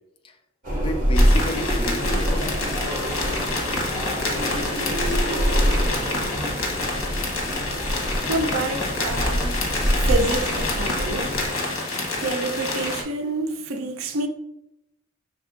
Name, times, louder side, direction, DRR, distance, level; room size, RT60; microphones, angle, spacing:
sound 1, 0.6-11.5, equal, 40° right, 1.4 m, -25 dB
voice 1, 0.8-2.6, equal, 25° left, 0.3 m, -33 dB
sound 2, 1.1-13.0, left 2 dB, 75° left, 1.0 m, -28 dB
voice 2, 8.3-9.7 9.9-11.5 12.2-14.3, right 2 dB, 75° right, 0.5 m, -28 dB
5.9 x 3.5 x 2.5 m
head